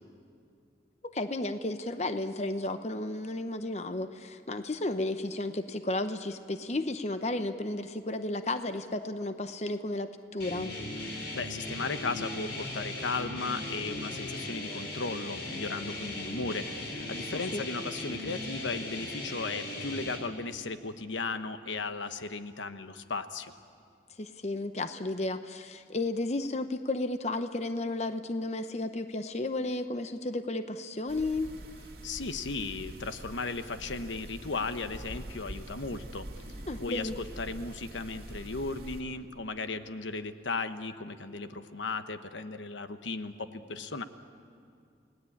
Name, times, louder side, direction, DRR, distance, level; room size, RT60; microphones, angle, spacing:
voice 1, 1.0-10.7 17.3-17.6 24.2-31.6 36.7-37.2, left 2 dB, 35° left, 9 dB, 0.8 m, -33 dB
sound 1, 10.4-20.2, left 2 dB, 65° left, 4.2 m, -38 dB
voice 2, 11.0-23.5 32.0-36.3 36.8-44.0, left 3 dB, 85° left, 10 dB, 1.1 m, -36 dB
sound 2, 31.1-39.0, right 1 dB, 55° right, 2.5 m, -45 dB
29.5 x 18.5 x 8.6 m, 2.4 s
head